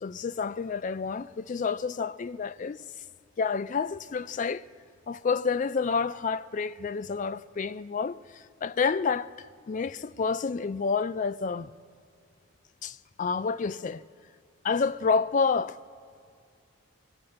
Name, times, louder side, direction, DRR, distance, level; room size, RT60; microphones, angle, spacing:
voice 1, 0.0-2.8 3.4-4.6 5.1-9.3 9.7-11.7 12.8-14.0 14.6-15.8, left 5 dB, 35° left, 0.3 m, -29 dB
21.5 x 8.6 x 7.7 m
head